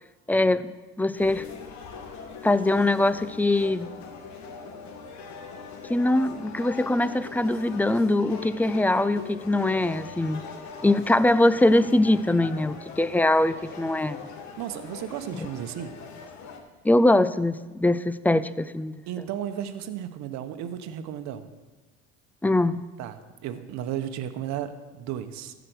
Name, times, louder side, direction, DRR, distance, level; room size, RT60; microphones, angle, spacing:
voice 1, 0.3-0.6 1.0-1.4 2.4-3.9 5.9-10.4 10.8-14.2 16.8-18.9 22.4-22.8, left 1 dB, 5° left, 15 dB, 0.4 m, -22 dB
sound 1, 1.1-16.6, left 5 dB, 60° left, 1.6 m, -41 dB
voice 2, 14.6-15.9 19.1-21.5 23.0-25.5, right 10 dB, 60° right, 9 dB, 1.0 m, -34 dB
14.0 x 5.0 x 6.2 m, 1.2 s
hypercardioid pair, 80°, 31 cm